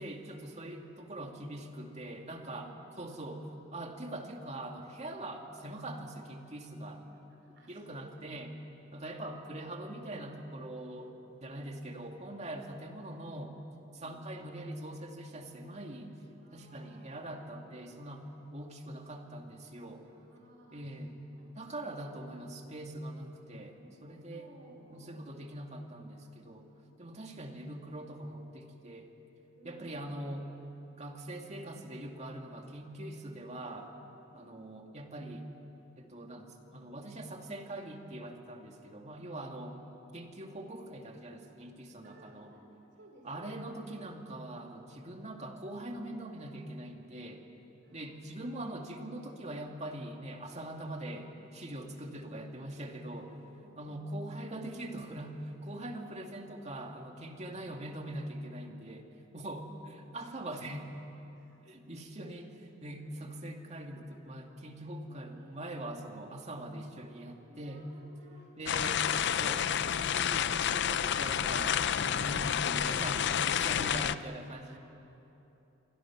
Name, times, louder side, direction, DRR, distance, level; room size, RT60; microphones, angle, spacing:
voice 1, 0.0-2.7 3.0-7.1 7.5-8.6 8.9-13.6 13.9-16.2 16.5-20.1 20.7-21.1 21.6-24.5 24.9-26.7 27.0-29.1 29.6-30.5 31.0-33.9 34.3-35.5 36.0-39.8 40.1-42.5 43.2-47.4 47.9-53.4 53.8-60.9 61.6-67.9 68.6-69.0 69.4-74.8, right 1 dB, 35° right, 3 dB, 2.2 m, -42 dB
voice 2, 2.4-3.0 5.3-5.5 7.4-8.4 11.4-12.7 14.0-14.2 16.4-18.2 20.0-22.3 23.5-25.3 26.8-26.9 29.6-30.0 34.3-34.5 41.9-42.6 43.0-43.7 47.8-48.2 51.8-52.2 53.5-54.2 59.5-59.8 61.4-61.7 63.0-63.3 65.0-66.3 67.4-68.5 73.6-74.0 74.7-74.8, equal, 60° right, -1 dB, 4.1 m, -59 dB
sound 1, 68.7-74.1, left 9 dB, 60° left, 0.5 m, -30 dB
28.0 x 23.5 x 6.1 m, 3.0 s
head